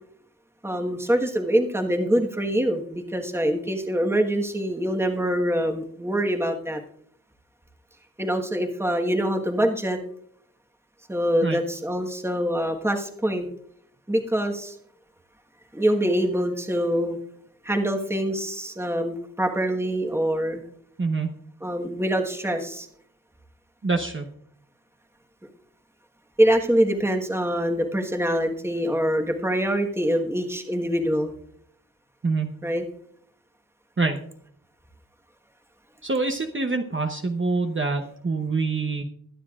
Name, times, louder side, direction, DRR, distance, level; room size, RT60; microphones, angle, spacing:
voice 1, 0.6-6.8 8.2-10.0 11.1-13.5 14.1-14.8 15.7-17.2 17.6-20.6 21.6-22.9 26.4-31.3 32.6-32.8, equal, 5° right, 3 dB, 1.4 m, -24 dB
voice 2, 21.0-21.4 23.8-24.3 32.2-32.6 34.0-34.2 36.0-39.0, right 3 dB, 35° right, 4 dB, 0.9 m, -25 dB
22.5 x 9.6 x 2.4 m, 0.65 s
wide cardioid pair, 100°, 36 cm